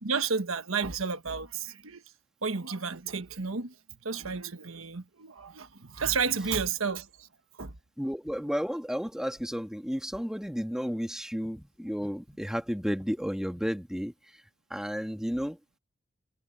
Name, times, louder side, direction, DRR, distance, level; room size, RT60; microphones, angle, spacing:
voice 1, 0.0-2.0 2.4-3.7 4.0-7.3 7.6-7.7, right 5 dB, 90° right, 1.3 m, -32 dB
voice 2, 8.0-14.4 14.7-15.6, equal, 5° right, 1.6 m, -32 dB
head